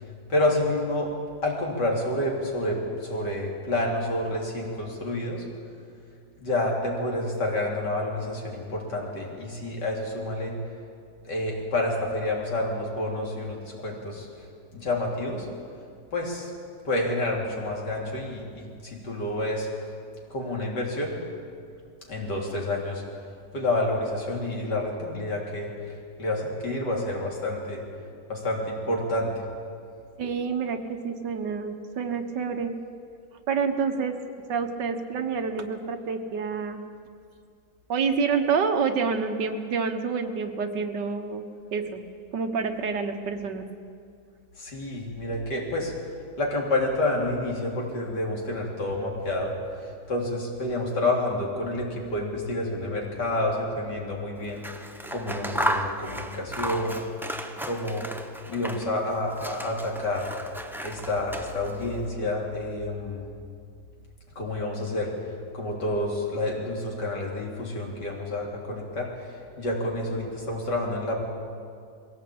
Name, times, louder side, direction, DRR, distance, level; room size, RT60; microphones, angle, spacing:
voice 1, 0.3-1.1 1.4-5.4 6.4-10.6 11.2-14.3 14.7-15.5 16.1-16.5 16.8-19.7 20.3-21.2 22.1-23.0 23.5-27.8 28.3-29.3 44.6-45.9 46.4-54.6 55.1-57.0 57.6-58.1 58.5-60.3 60.8-63.2 64.4-65.1 65.5-71.2, left 1 dB, 70° left, -1 dB, 3.9 m, -29 dB
voice 2, 30.2-32.8 33.5-34.2 34.5-36.8 37.9-41.4 41.7-42.0 42.3-43.7, right 5 dB, 75° right, 6 dB, 1.9 m, -28 dB
Scissors, 54.5-59.0 59.3-61.9, right 1 dB, ahead, 0.6 m, -34 dB
21.5 x 17.0 x 8.6 m, 2.3 s
omnidirectional pair, 1.9 m